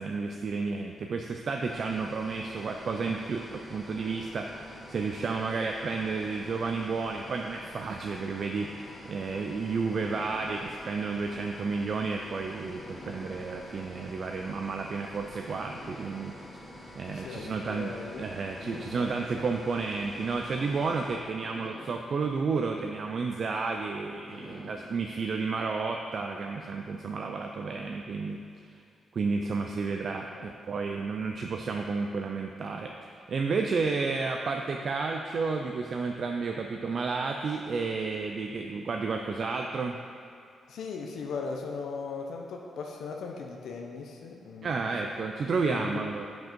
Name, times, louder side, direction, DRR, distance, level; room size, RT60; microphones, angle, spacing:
voice 1, 0.0-16.3 16.9-28.4 29.1-32.9 33.3-40.0 44.6-46.3, right 4 dB, 55° right, 3 dB, 0.4 m, -31 dB
sound 1, 1.6-21.2, equal, 20° right, 1.4 m, -48 dB
sound 2, 7.6-9.4 10.0-12.3 12.8-15.1 15.7-18.0 18.6-20.8 21.4-23.7 24.3-26.5, left 1 dB, 25° left, 1.7 m, -52 dB
voice 2, 17.1-18.3 18.6-19.5 30.3-30.5 40.7-44.9 45.6-46.1, left 4 dB, 80° left, 1 dB, 0.6 m, -38 dB
6.1 x 5.2 x 5.2 m, 2.4 s
cardioid pair, 90°, 0 cm